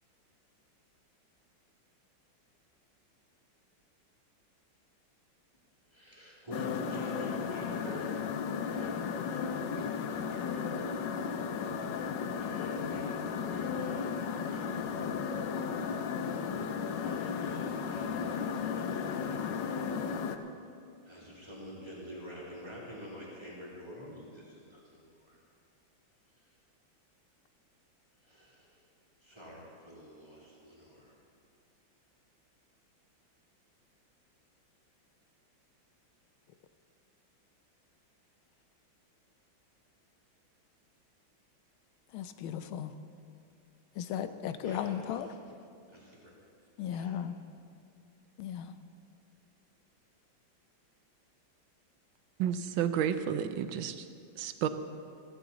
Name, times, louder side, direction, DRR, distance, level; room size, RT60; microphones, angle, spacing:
voice 1, 5.9-10.8 11.9-15.3 16.9-19.9 21.0-25.4 26.3-26.5 28.2-28.8 29.2-31.2 44.6-45.3 45.9-46.3 46.9-47.1, equal, 15° right, -6 dB, 2.9 m, -48 dB
sound 1, 6.5-20.4, left 6 dB, 70° left, 1.3 m, -34 dB
voice 2, 42.1-42.9 43.9-45.3 46.8-47.4 48.4-48.7, left 9 dB, 85° left, 10 dB, 1.5 m, -36 dB
voice 3, 52.4-54.1 54.4-54.7, right 9 dB, 80° right, 10 dB, 1.5 m, -31 dB
15.5 x 15.0 x 4.1 m, 2.4 s
omnidirectional pair, 2.2 m